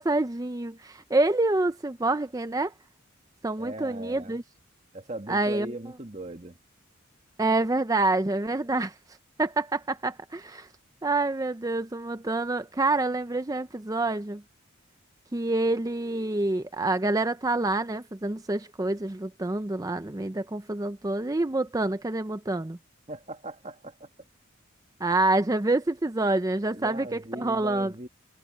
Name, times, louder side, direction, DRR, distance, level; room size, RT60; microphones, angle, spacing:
voice 1, 0.0-2.7 3.4-4.4 5.3-5.7 7.4-8.9 9.4-10.7 11.0-14.4 15.3-22.8 25.0-27.9, right 2 dB, 15° right, 0.5 m, -27 dB
voice 2, 3.6-4.4 4.9-6.5 23.1-24.1 26.7-28.1, right 2 dB, 30° right, 1.8 m, -39 dB
head